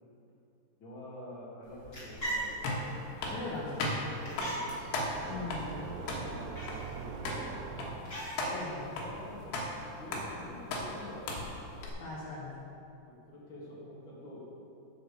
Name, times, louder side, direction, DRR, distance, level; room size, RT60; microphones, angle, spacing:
voice 1, 0.8-2.8 3.1-8.0 9.0-9.6 9.9-11.5 13.0-14.5, left 1 dB, 35° left, -7 dB, 2.7 m, -47 dB
sound 1, 1.6-9.4, right 1 dB, 20° left, 2.2 m, -43 dB
sound 2, 2.2-11.9, left 1 dB, 80° left, 3.3 m, -38 dB
voice 2, 3.3-3.8 4.3-4.5 5.3-5.8 8.5-8.9 12.0-12.6, left 3 dB, 60° left, -7 dB, 2.3 m, -40 dB
sound 3, 5.1-8.3, right 8 dB, 85° right, 2.7 m, -44 dB
8.8 x 6.9 x 6.9 m, 2.7 s
omnidirectional pair, 4.7 m